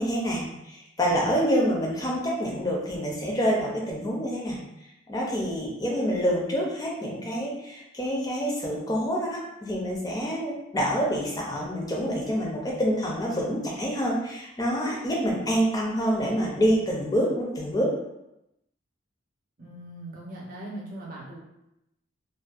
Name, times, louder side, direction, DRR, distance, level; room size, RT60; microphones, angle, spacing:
voice 1, 0.0-4.6 5.1-17.9, equal, 20° left, -3 dB, 0.4 m, -27 dB
voice 2, 19.6-21.4, right 1 dB, 40° right, -4 dB, 0.6 m, -40 dB
2.5 x 2.1 x 2.3 m, 0.87 s
head